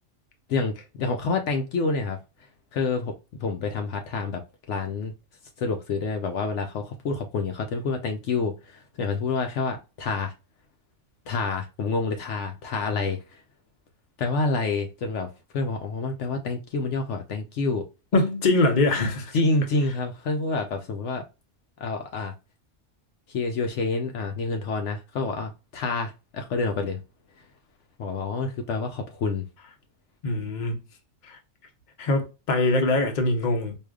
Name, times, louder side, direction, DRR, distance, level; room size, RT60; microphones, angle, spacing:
voice 1, 0.5-2.2 2.7-4.4 4.7-5.1 5.6-10.3 11.3-13.4 14.2-17.8 19.3-21.2 21.8-22.3 23.3-27.0 28.0-29.4, left 3 dB, 70° left, 0.9 m, -28 dB
voice 2, 18.1-19.3 30.2-30.8 31.2-31.4 32.0-33.8, left 2 dB, 40° left, 0.8 m, -23 dB
4.8 x 2.7 x 2.2 m
omnidirectional pair, 1.3 m